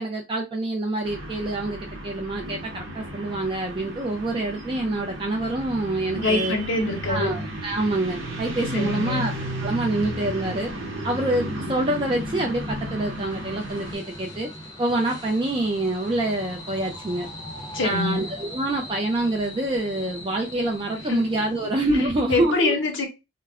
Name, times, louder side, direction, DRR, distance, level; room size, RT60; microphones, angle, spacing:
voice 1, 0.0-6.6 7.1-9.3 9.6-10.7 11.0-14.5 14.8-17.3 17.8-22.8, right 2 dB, 25° right, 0.4 m, -26 dB
sound 1, 1.0-13.9, equal, 85° right, 0.9 m, -33 dB
sound 2, 2.8-22.1, equal, 20° left, 0.6 m, -43 dB
voice 2, 6.1-7.3 8.7-9.2 17.7-18.3 21.1-21.3 21.6-23.1, left 2 dB, 70° left, 0.7 m, -26 dB
2.2 x 2.0 x 3.4 m
head